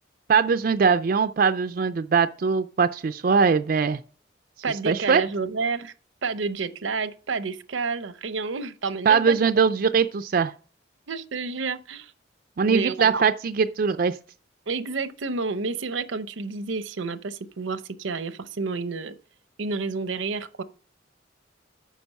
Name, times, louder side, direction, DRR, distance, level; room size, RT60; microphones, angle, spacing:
voice 1, 0.3-4.0 4.9-5.2 9.1-10.5 12.6-14.2, right 5 dB, 50° right, 0.4 m, -21 dB
voice 2, 4.6-5.9 6.2-9.4 11.1-12.1 12.7-13.3 14.7-19.2 19.6-20.6, right 4 dB, 80° right, 0.7 m, -30 dB
9.2 x 6.0 x 5.4 m
head